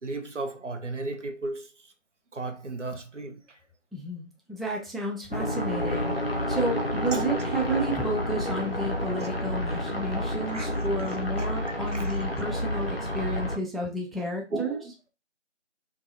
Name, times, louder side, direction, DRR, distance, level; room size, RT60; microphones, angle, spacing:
voice 1, 0.0-1.9 2.3-3.6 7.1-7.4 10.5-11.5 11.9-12.1 14.5-15.1, right 2 dB, 75° right, 0.6 m, -36 dB
voice 2, 3.9-14.8, right 1 dB, ahead, 0.4 m, -32 dB
sound 1, 5.3-13.6, equal, 50° left, 0.5 m, -29 dB
2.7 x 2.3 x 2.6 m
figure-of-eight pair, 180°, 37 cm